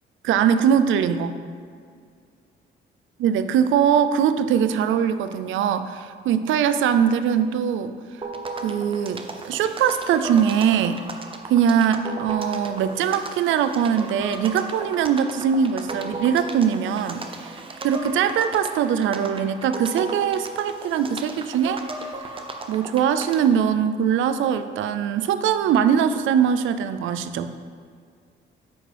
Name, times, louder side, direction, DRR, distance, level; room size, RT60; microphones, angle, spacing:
voice 1, 0.2-1.4 3.2-7.9 8.6-11.0 11.5-17.6 17.8-21.8 22.7-27.5, right 8 dB, 80° right, 11 dB, 0.4 m, -21 dB
sound 1, 8.2-23.6, right 2 dB, 25° right, 0.6 m, -36 dB
9.1 x 4.9 x 3.4 m, 2.1 s
cardioid pair, 90°, 20 cm